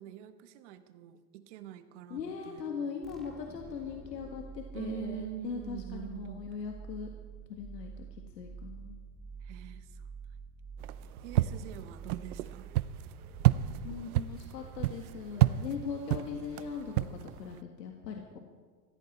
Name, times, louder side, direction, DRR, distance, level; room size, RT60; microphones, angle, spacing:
voice 1, 0.0-2.9 4.7-6.5 9.4-10.0 11.2-12.7, right 13 dB, 45° right, 10 dB, 1.2 m, -45 dB
voice 2, 2.1-7.1 7.5-8.1 8.4-9.0 13.8-18.4, left 6 dB, 90° left, 2 dB, 1.9 m, -40 dB
sound 1, 3.0-14.5, right 5 dB, ahead, 1.4 m, -47 dB
sound 2, 10.8-17.6, right 14 dB, 65° right, 0.7 m, -31 dB
18.5 x 15.5 x 4.3 m, 1.5 s
supercardioid pair, 150°, 48 cm